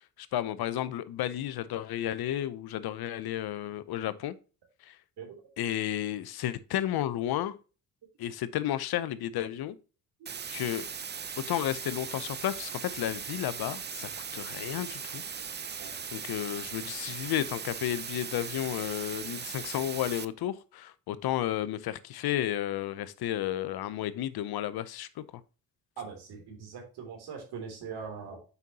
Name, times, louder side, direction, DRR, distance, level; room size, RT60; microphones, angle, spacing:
voice 1, 0.0-4.4 4.8-5.0 5.6-7.6 8.2-9.8 10.5-10.9 11.5-15.2 16.1-25.2, left 12 dB, 65° left, 0.8 m, -32 dB
sound 1, 10.3-20.3, right 6 dB, 25° right, 0.6 m, -39 dB
voice 2, 26.0-28.4, right 6 dB, 75° right, 3.1 m, -41 dB
8.1 x 5.4 x 2.8 m
supercardioid pair, 60°, 40 cm